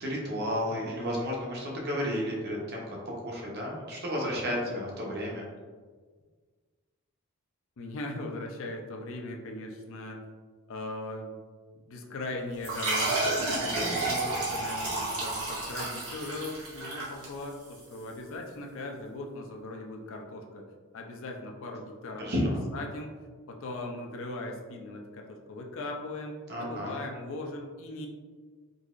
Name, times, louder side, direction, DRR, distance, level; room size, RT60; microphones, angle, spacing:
voice 1, 0.0-3.0 3.2-5.5 13.5-14.0 22.2-22.6 26.5-27.0, equal, 45° right, -2 dB, 0.8 m, -32 dB
voice 2, 7.8-10.2 10.7-11.4 11.9-13.3 13.8-20.6 20.9-23.1 23.5-28.1, left 2 dB, 60° left, 2 dB, 0.4 m, -39 dB
sound 1, 12.6-17.8, right 2 dB, 75° right, 1.3 m, -31 dB
3.8 x 2.8 x 2.4 m, 1.5 s
head